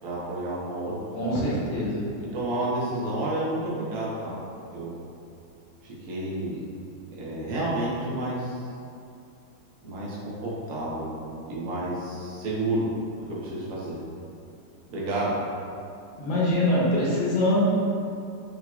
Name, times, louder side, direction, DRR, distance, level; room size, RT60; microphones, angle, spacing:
voice 1, 0.0-0.9 2.2-4.3 4.7-4.9 5.8-6.6 7.1-8.6 9.8-11.1 11.5-12.9 13.3-14.0 14.9-15.3, right 1 dB, 55° right, -6 dB, 1.2 m, -30 dB
voice 2, 1.1-2.0 16.2-17.6, left 1 dB, 80° left, -6 dB, 1.6 m, -24 dB
6.0 x 2.9 x 2.3 m, 2.6 s
omnidirectional pair, 2.0 m